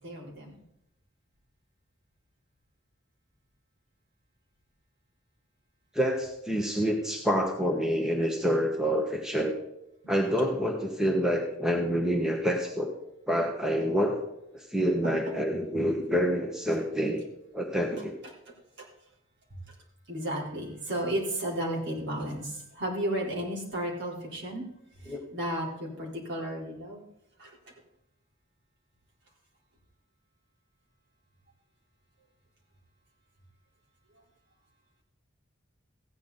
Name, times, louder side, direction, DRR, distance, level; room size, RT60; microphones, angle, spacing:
voice 1, 0.0-0.5 10.0-10.1 15.0-15.2 18.2-18.9 20.1-24.7 25.0-27.1 27.4-27.6, right 1 dB, 60° right, -3 dB, 3.7 m, -34 dB
voice 2, 5.9-9.5 10.1-12.9 13.3-14.2 14.5-17.3 17.5-18.2 25.1-25.2, equal, 5° right, 1 dB, 1.2 m, -27 dB
15.0 x 9.4 x 4.0 m, 0.83 s
head